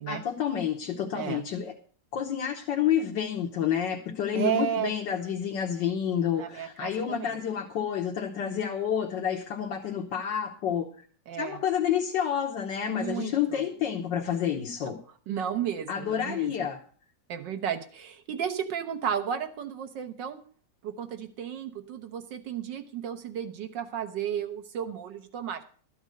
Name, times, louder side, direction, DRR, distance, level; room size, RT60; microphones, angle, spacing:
voice 1, 0.1-1.7 2.1-10.9 11.4-15.0 15.9-16.8, left 9 dB, 85° left, 1 dB, 1.8 m, -29 dB
voice 2, 1.1-1.4 4.3-4.9 6.3-7.4 11.3-11.6 12.8-13.6 14.8-14.9 15.3-16.7 17.3-20.4 20.8-25.6, right 9 dB, 90° right, 9 dB, 1.8 m, -33 dB
13.0 x 8.0 x 6.3 m, 0.44 s
omnidirectional pair, 1.9 m